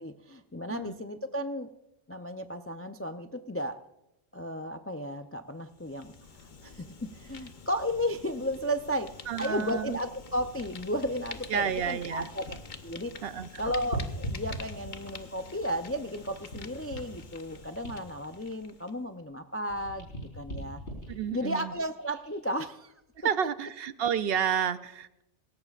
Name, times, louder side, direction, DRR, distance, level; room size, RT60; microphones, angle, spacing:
voice 1, 0.0-1.7 2.1-3.8 4.3-6.1 6.6-9.1 9.4-12.6 12.8-13.1 13.6-20.1 20.3-20.8 21.3-22.9, equal, 25° left, 7 dB, 0.3 m, -34 dB
Fire, 5.6-19.0, left 5 dB, 45° left, 1.0 m, -48 dB
voice 2, 9.3-10.0 11.5-12.3 13.2-13.5 21.1-21.7 23.2-25.2, right 8 dB, 65° right, 13 dB, 0.8 m, -30 dB
sound 1, 10.1-12.8 13.1-15.2 15.8-19.3 19.6-22.4 23.0-23.2, right 1 dB, 80° left, 4.8 m, -41 dB
19.0 x 17.5 x 2.4 m, 0.90 s
omnidirectional pair, 1.2 m